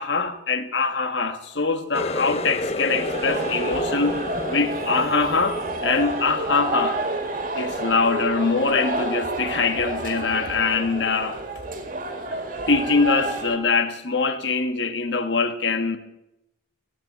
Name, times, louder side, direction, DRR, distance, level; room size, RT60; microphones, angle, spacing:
voice 1, 0.0-4.2 4.5-7.0 7.5-11.4 12.7-16.0, left 4 dB, 70° left, 1.6 m, -23 dB
Water tap faucet, 1.9-7.4 7.8-8.3 8.7-9.0 9.8-9.9, left 2 dB, 35° left, 0.9 m, -31 dB
sound 1, 2.9-13.6, right 2 dB, 45° right, 2.2 m, -29 dB
17.0 x 9.0 x 9.6 m
head